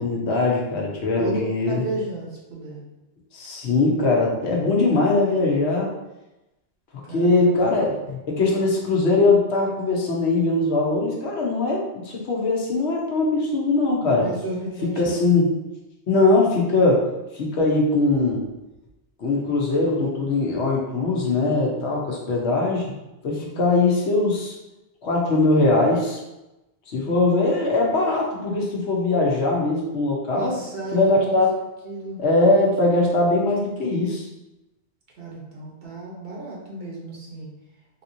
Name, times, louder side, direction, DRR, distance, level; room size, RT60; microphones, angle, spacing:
voice 1, 0.0-1.8 3.3-5.9 7.1-14.3 14.8-15.5 16.1-17.1 17.3-18.4 19.2-22.9 23.2-24.5 25.0-26.2 26.9-30.5 30.9-31.6 32.2-34.3, left 2 dB, 75° left, -2 dB, 1.0 m, -21 dB
voice 2, 1.2-2.8 7.0-8.0 14.1-15.3 23.3-23.6 30.3-31.4 31.8-32.2 35.2-37.5, right 2 dB, 60° right, -3 dB, 0.9 m, -33 dB
3.4 x 2.8 x 2.6 m, 0.98 s
omnidirectional pair, 1.1 m